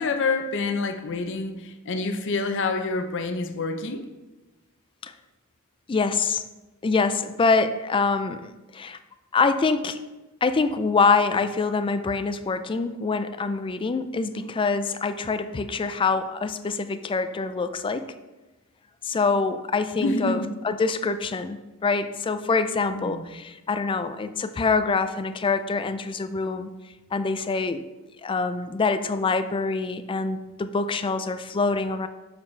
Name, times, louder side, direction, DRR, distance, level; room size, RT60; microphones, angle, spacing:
voice 1, 0.0-4.0 20.0-20.5 22.9-23.2, left 3 dB, 55° left, 7 dB, 0.7 m, -27 dB
voice 2, 5.9-6.4 6.8-9.0 9.3-10.0 10.4-18.1 19.0-26.7 27.1-27.8 28.2-32.1, left 4 dB, 25° left, 11 dB, 0.3 m, -25 dB
7.0 x 6.8 x 3.3 m, 1.1 s
head